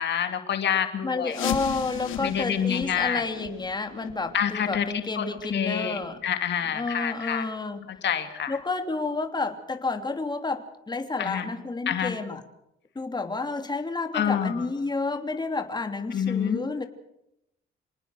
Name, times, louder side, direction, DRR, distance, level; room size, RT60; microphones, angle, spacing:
voice 1, 0.0-1.4 2.2-3.2 4.3-4.9 5.2-7.5 8.0-8.6 11.2-11.5 11.9-12.1 14.1-14.7 16.1-16.6, left 8 dB, 60° left, 7 dB, 2.6 m, -27 dB
voice 2, 1.0-6.2 6.7-7.9 8.5-12.4 12.9-16.9, left 3 dB, 20° left, 6 dB, 3.0 m, -30 dB
sound 1, 1.3-6.9 7.2-7.3 7.9-8.0 8.6-8.7 9.2-9.3, left 11 dB, 85° left, 2.5 m, -37 dB
27.0 x 19.0 x 6.4 m, 0.82 s
cardioid pair, 90°, 20 cm